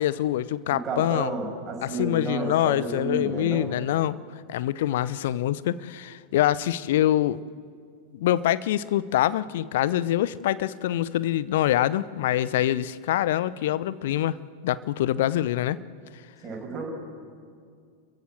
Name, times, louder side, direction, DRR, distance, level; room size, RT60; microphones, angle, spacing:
voice 1, 0.0-1.3 1.8-4.2 4.5-7.4 8.1-15.8, left 13 dB, 55° left, 18 dB, 0.7 m, -25 dB
voice 2, 0.7-3.7 16.4-16.9, right 3 dB, 25° right, -1 dB, 6.7 m, -31 dB
29.0 x 15.5 x 7.6 m, 2.1 s
figure-of-eight pair, 90°, 0 cm